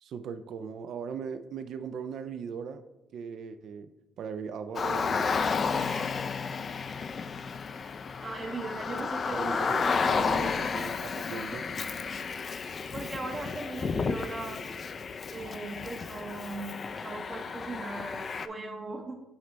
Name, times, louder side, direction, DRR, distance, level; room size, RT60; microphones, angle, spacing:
voice 1, 0.0-2.8 3.1-3.9 4.2-5.4 9.3-11.7, right 6 dB, 65° right, 10 dB, 0.4 m, -39 dB
Car, 4.8-18.5, left 5 dB, 40° left, 0.3 m, -32 dB
voice 2, 8.2-10.2 12.9-14.7 15.3-19.2, right 2 dB, 35° right, 1 dB, 0.7 m, -39 dB
8.6 x 3.9 x 3.2 m, 0.97 s
cardioid pair, 120°, 0 cm